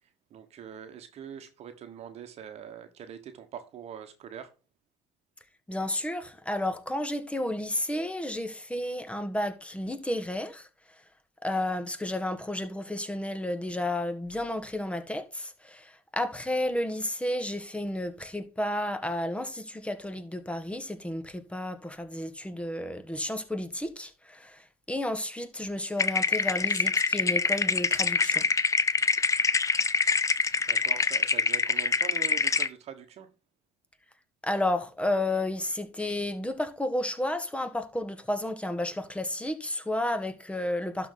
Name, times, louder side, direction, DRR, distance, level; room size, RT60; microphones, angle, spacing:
voice 1, 0.3-4.5 30.6-33.3, right 8 dB, 55° right, 1.2 m, -43 dB
voice 2, 5.7-10.7 11.4-28.4 34.4-41.1, left 1 dB, 10° left, 1.5 m, -32 dB
sound 1, 26.0-32.7, left 5 dB, 25° left, 0.7 m, -25 dB
12.0 x 4.3 x 3.8 m
hypercardioid pair, 70°, 13 cm